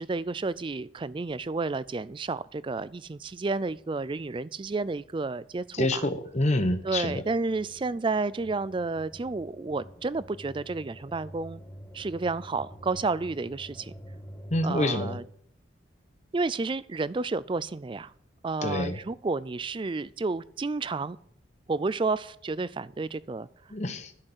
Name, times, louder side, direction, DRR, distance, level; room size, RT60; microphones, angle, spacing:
voice 1, 0.0-6.1 6.8-11.6 11.9-13.9 14.6-15.2 16.3-18.1 18.4-21.2 21.7-23.5, right 3 dB, 25° right, 18 dB, 0.3 m, -31 dB
voice 2, 5.7-7.2 14.5-15.2 18.6-19.0 23.7-24.1, left 1 dB, 35° left, 7 dB, 1.0 m, -27 dB
sound 1, 6.2-15.0, equal, 15° left, 1.4 m, -48 dB
11.5 x 6.5 x 7.9 m, 0.63 s
head